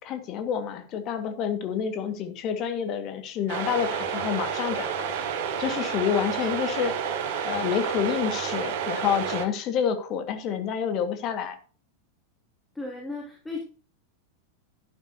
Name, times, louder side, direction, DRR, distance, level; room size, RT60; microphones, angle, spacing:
voice 1, 0.0-5.1 5.6-6.9 7.4-11.6, left 8 dB, 35° left, 7 dB, 2.0 m, -28 dB
sound 1, 3.5-9.5, right 7 dB, 50° right, 1.6 m, -30 dB
voice 2, 12.7-13.6, left 3 dB, 5° left, -1 dB, 2.8 m, -35 dB
11.5 x 11.5 x 2.9 m, 0.40 s
figure-of-eight pair, 90°, 0 cm